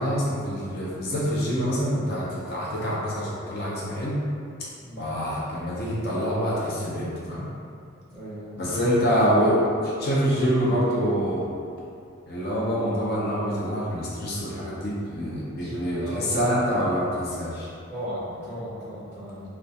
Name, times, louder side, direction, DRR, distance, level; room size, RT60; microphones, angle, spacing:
voice 1, 0.0-4.2 5.0-7.5 8.5-11.5 12.3-17.7, equal, 50° left, -7 dB, 0.5 m, -26 dB
voice 2, 8.1-8.8 15.5-16.5 17.9-19.5, equal, 10° left, -17 dB, 0.7 m, -36 dB
2.2 x 2.2 x 2.7 m, 2.4 s
head